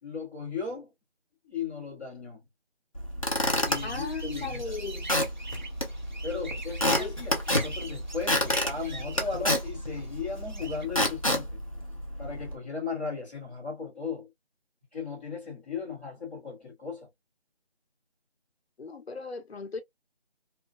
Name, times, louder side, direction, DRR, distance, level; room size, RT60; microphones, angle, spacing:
voice 1, 0.0-0.9 1.4-2.4 3.6-4.8 6.2-11.6 12.2-14.3 14.9-17.1, left 5 dB, 10° left, 1.0 m, -37 dB
Squeak / Wood, 2.9-12.6, left 1 dB, 35° left, 0.5 m, -30 dB
sound 1, 3.7-10.9, right 3 dB, 45° right, 0.6 m, -44 dB
voice 2, 3.8-5.2 7.0-7.2 18.8-19.8, left 4 dB, 75° left, 0.6 m, -37 dB
2.7 x 2.4 x 2.2 m
figure-of-eight pair, 165°, 32 cm